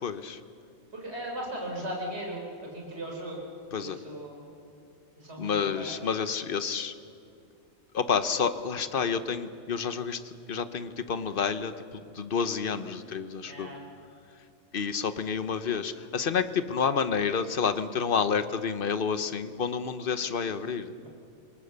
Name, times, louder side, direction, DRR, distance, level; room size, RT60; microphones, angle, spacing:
voice 1, 0.0-0.4 3.7-4.0 5.4-6.9 7.9-13.7 14.7-20.9, left 6 dB, 45° left, 11 dB, 1.0 m, -29 dB
voice 2, 0.9-3.4 3.7-4.4 5.2-6.2 13.5-13.8 21.0-21.1, right 1 dB, 50° right, -1 dB, 4.6 m, -38 dB
27.0 x 19.5 x 6.8 m, 2.6 s
omnidirectional pair, 1.4 m